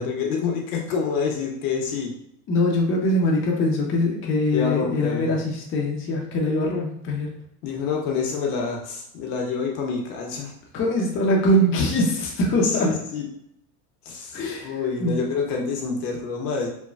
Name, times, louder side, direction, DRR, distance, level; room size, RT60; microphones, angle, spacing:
voice 1, 0.0-2.1 4.5-5.3 7.6-10.5 12.6-13.2 14.0-16.7, left 5 dB, 70° left, 1 dB, 0.9 m, -27 dB
voice 2, 2.5-7.3 10.7-13.0 14.3-14.7 15.0-15.1, left 1 dB, 30° left, -2 dB, 0.6 m, -22 dB
3.1 x 2.2 x 2.3 m, 0.74 s
supercardioid pair, 105°, 45 cm